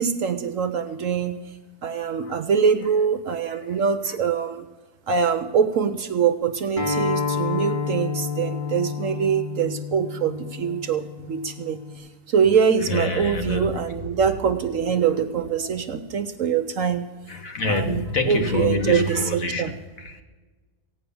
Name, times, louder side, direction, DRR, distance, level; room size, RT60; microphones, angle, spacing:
voice 1, 0.0-1.4 1.8-4.7 5.1-17.1 17.7-19.7, right 7 dB, 60° right, 11 dB, 0.9 m, -24 dB
Acoustic guitar, 6.8-12.0, left 5 dB, 15° left, 3.4 m, -29 dB
voice 2, 12.9-13.7 17.3-19.7 20.0-20.2, left 3 dB, 55° left, 5 dB, 1.8 m, -26 dB
15.5 x 9.5 x 6.9 m, 1.3 s
omnidirectional pair, 1.7 m